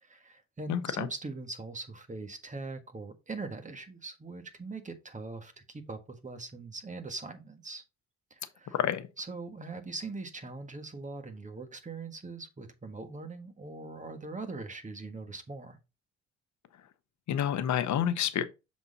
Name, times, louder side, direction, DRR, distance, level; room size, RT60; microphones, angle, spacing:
voice 1, 0.0-7.8 8.3-8.7 9.2-15.8, right 3 dB, 25° right, 1.5 m, -41 dB
voice 2, 0.7-1.1 8.7-9.1 17.3-18.4, left 10 dB, 70° left, 0.9 m, -29 dB
7.0 x 4.3 x 4.1 m
cardioid pair, 90°, 30 cm